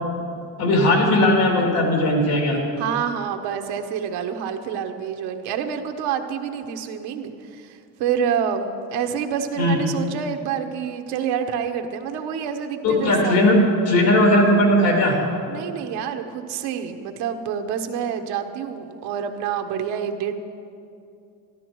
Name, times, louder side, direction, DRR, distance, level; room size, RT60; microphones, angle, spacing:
voice 1, 0.6-2.6 9.6-9.8 12.8-13.6 13.8-15.2, left 1 dB, 75° left, 0 dB, 3.2 m, -18 dB
voice 2, 2.8-13.4 15.5-20.3, right 8 dB, 85° right, 5 dB, 1.1 m, -27 dB
13.0 x 12.5 x 4.6 m, 2.5 s
cardioid pair, 110°, 38 cm